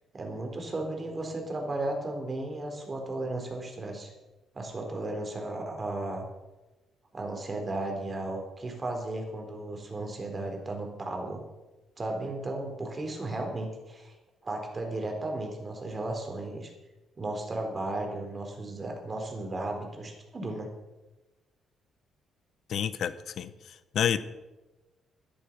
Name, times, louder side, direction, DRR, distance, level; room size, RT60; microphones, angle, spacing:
voice 1, 0.1-4.1 4.5-6.2 7.1-11.4 12.0-14.1 14.4-16.7 17.2-20.7, right 2 dB, 30° right, 2 dB, 4.0 m, -35 dB
voice 2, 22.7-24.2, left 9 dB, 65° left, 13 dB, 1.0 m, -30 dB
12.5 x 11.5 x 6.0 m, 1.1 s
cardioid pair, 90°, 0 cm